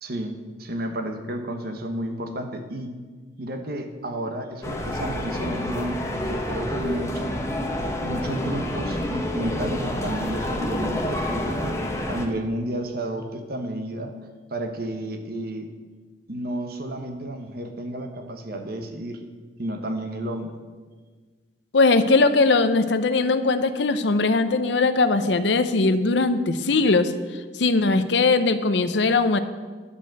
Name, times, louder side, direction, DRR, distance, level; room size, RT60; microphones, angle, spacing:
voice 1, 0.0-2.9 3.4-7.3 7.8-11.8 12.1-14.1 14.5-15.7 16.3-19.2 19.6-20.5, right 1 dB, 60° right, 5 dB, 1.1 m, -31 dB
sound 1, 4.6-12.3, left 1 dB, 15° left, 1.0 m, -28 dB
voice 2, 21.7-27.1 27.6-29.4, left 3 dB, 80° left, 11 dB, 0.7 m, -20 dB
11.0 x 5.2 x 7.6 m, 1.5 s
head